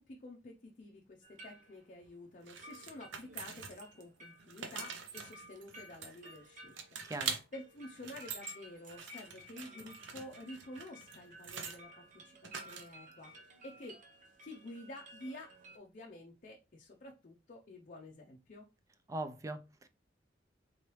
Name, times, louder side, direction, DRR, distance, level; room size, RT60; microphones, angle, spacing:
voice 1, 0.0-7.0 7.5-13.3 13.6-14.0 14.4-18.7, left 1 dB, 45° left, 0.5 m, -50 dB
sound 1, 1.2-15.8, equal, 45° right, 0.7 m, -56 dB
sound 2, 2.5-4.0 4.4-6.4 6.8-7.4 7.9-8.5 8.9-11.8 12.4-13.1, right 6 dB, 80° right, 0.7 m, -44 dB
voice 2, 7.0-7.4 19.1-19.9, right 2 dB, 15° right, 0.3 m, -40 dB
3.8 x 3.1 x 3.0 m
head